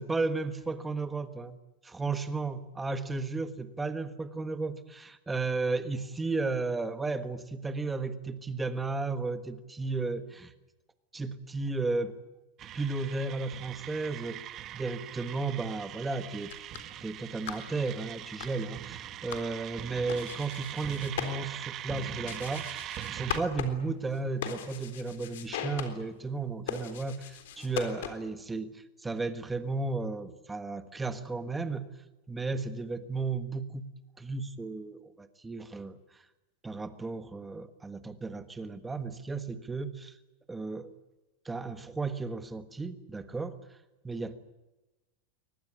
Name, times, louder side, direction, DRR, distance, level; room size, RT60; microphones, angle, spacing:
voice 1, 0.0-1.6 1.8-10.5 11.1-12.2 12.7-14.5 14.7-16.5 17.0-31.9 32.3-33.9 34.2-36.2 36.6-40.2 40.5-40.9 41.4-43.8 44.0-44.4, right 3 dB, 10° right, 10 dB, 1.5 m, -34 dB
sound 1, 12.6-23.4, right 12 dB, 30° right, 0.9 m, -42 dB
sound 2, 16.3-28.4, left 9 dB, 75° left, 3.7 m, -41 dB
23.0 x 19.5 x 9.9 m, 1.0 s
supercardioid pair, 160°, 0 cm